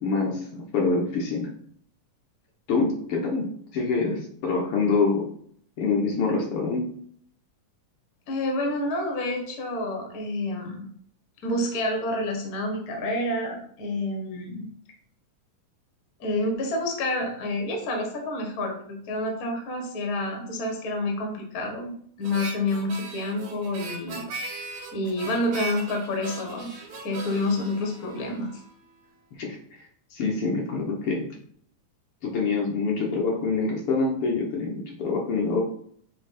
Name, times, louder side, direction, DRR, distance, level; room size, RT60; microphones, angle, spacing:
voice 1, 0.0-1.5 2.7-5.3 5.8-6.8 29.4-29.8 30.1-31.3 32.2-35.6, left 4 dB, 65° left, -1 dB, 1.5 m, -26 dB
voice 2, 8.3-10.9 11.4-14.7 16.2-21.9 22.2-24.3 24.9-26.7 27.0-28.5, left 1 dB, 85° left, 1 dB, 0.8 m, -28 dB
Harmonica, 22.2-28.7, right 3 dB, 70° right, 2.7 m, -39 dB
7.8 x 3.1 x 4.2 m, 0.63 s
omnidirectional pair, 3.8 m